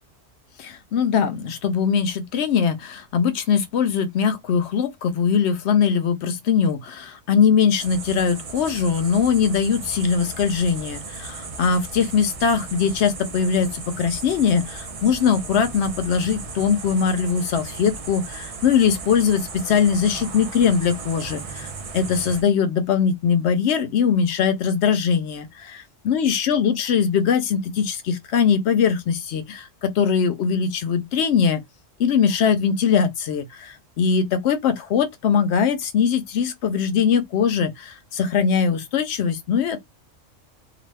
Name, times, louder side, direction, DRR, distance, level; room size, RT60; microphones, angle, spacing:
voice 1, 0.6-31.6 32.0-39.8, left 6 dB, 65° left, 0.8 m, -21 dB
sound 1, 7.8-22.4, right 4 dB, 55° right, 0.3 m, -36 dB
2.4 x 2.3 x 3.3 m
omnidirectional pair, 1.3 m